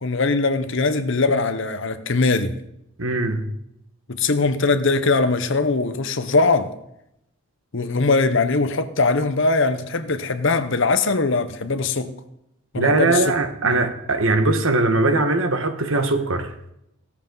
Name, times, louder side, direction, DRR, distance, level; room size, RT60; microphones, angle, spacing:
voice 1, 0.0-2.6 4.1-6.7 7.7-12.1 12.7-13.2 13.6-13.7, left 3 dB, 55° left, 0.9 m, -21 dB
voice 2, 3.0-3.5 12.7-16.5, right 2 dB, 60° right, 1.4 m, -20 dB
16.5 x 13.0 x 4.0 m
head